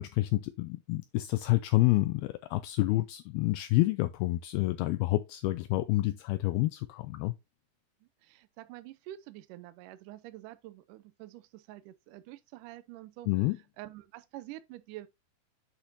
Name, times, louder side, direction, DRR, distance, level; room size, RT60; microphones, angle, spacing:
voice 1, 0.0-7.3 13.3-13.6, left 18 dB, 80° left, 2.4 m, -28 dB
voice 2, 8.0-13.5 13.8-15.1, right 15 dB, 85° right, 1.8 m, -47 dB
8.1 x 6.0 x 2.7 m
omnidirectional pair, 4.6 m